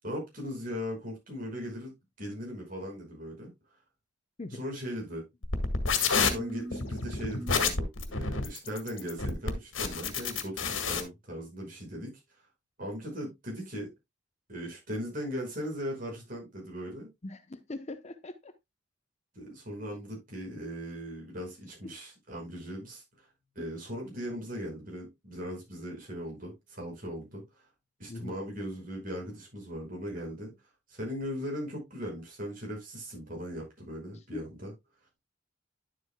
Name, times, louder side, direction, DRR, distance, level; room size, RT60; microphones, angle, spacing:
voice 1, 0.0-1.9 2.2-3.5 4.5-5.3 6.1-12.1 12.8-13.9 14.5-17.1 19.3-23.0 23.6-27.6 28.0-30.5 30.9-34.7, equal, 45° right, 5.6 m, -38 dB
sound 1, 5.4-11.0, left 5 dB, 90° left, 1.6 m, -29 dB
voice 2, 17.2-18.5 28.1-28.3 34.3-34.4, left 2 dB, 35° left, 0.7 m, -40 dB
11.0 x 7.7 x 2.2 m
head